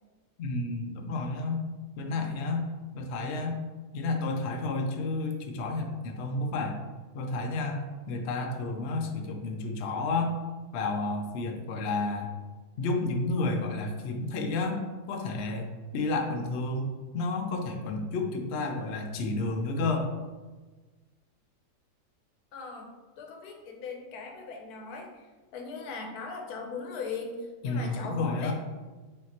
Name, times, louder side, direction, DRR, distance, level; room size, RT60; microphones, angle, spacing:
voice 1, 0.4-1.7 2.0-2.7 2.9-3.6 3.9-6.8 7.1-10.4 10.7-12.3 12.8-14.8 15.1-20.1 27.6-28.5, left 3 dB, 85° left, 3 dB, 0.6 m, -31 dB
voice 2, 22.5-28.5, left 4 dB, 70° left, 2 dB, 1.1 m, -39 dB
5.2 x 2.8 x 2.8 m, 1.3 s
omnidirectional pair, 1.8 m